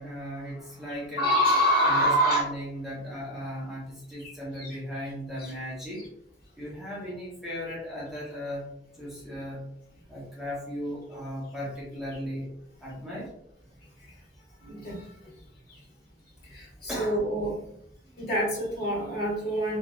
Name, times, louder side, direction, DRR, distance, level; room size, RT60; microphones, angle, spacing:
voice 1, 0.0-1.3 1.8-6.1 6.6-8.7 9.0-9.6 10.1-12.5 12.8-13.3 16.9-17.2 18.1-18.2, equal, ahead, -7 dB, 0.7 m, -36 dB
voice 2, 0.9-2.5 4.2-4.7 5.4-5.5 6.0-6.1 14.6-15.1 15.7-15.8 16.5-17.6 18.2-19.8, equal, 55° left, -6 dB, 1.4 m, -26 dB
3.0 x 2.2 x 2.2 m, 0.73 s
head